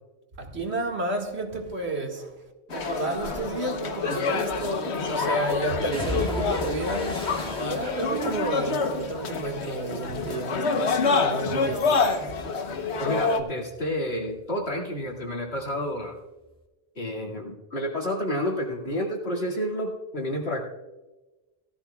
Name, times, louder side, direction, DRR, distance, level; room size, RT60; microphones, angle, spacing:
voice 1, 0.4-2.3 2.7-7.1 7.6-10.9 11.2-11.9, right 2 dB, 85° right, 2.2 m, -31 dB
sound 1, 2.7-13.4, left 4 dB, 90° left, 1.3 m, -27 dB
sound 2, 3.2-3.4 4.6-5.1 5.9-10.1 10.5-11.1 11.5-14.7 15.0-16.1 16.4-16.6, left 1 dB, 5° left, 1.5 m, -39 dB
voice 2, 13.0-16.2 17.0-20.6, equal, 70° left, 2.6 m, -30 dB
18.0 x 13.5 x 2.3 m
omnidirectional pair, 1.1 m